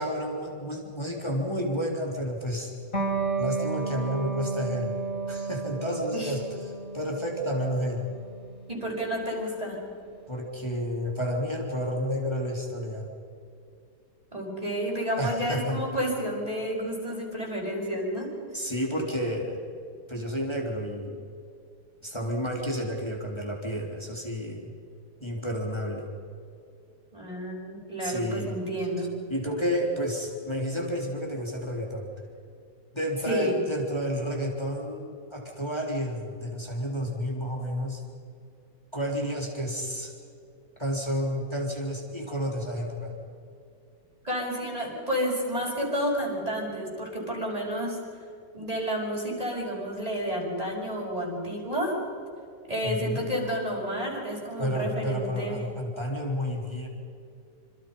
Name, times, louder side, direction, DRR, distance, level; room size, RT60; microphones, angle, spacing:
voice 1, 0.0-2.7 3.4-5.0 5.3-6.4 6.9-8.1 10.3-13.1 15.2-15.8 18.5-19.7 20.1-21.2 22.0-24.7 25.2-26.1 28.0-28.6 29.3-32.1 32.9-38.0 38.9-40.1 40.8-43.2 52.8-53.2 54.6-56.9, equal, 15° left, -1 dB, 3.6 m, -30 dB
Electric guitar, 2.9-10.1, right 4 dB, 45° left, 5.7 m, -33 dB
voice 2, 8.7-9.8 14.3-18.3 27.1-29.1 33.2-33.6 44.2-48.0 48.5-52.0 52.7-55.6, equal, 20° right, -2 dB, 6.3 m, -30 dB
27.0 x 27.0 x 5.5 m, 2.4 s
omnidirectional pair, 1.9 m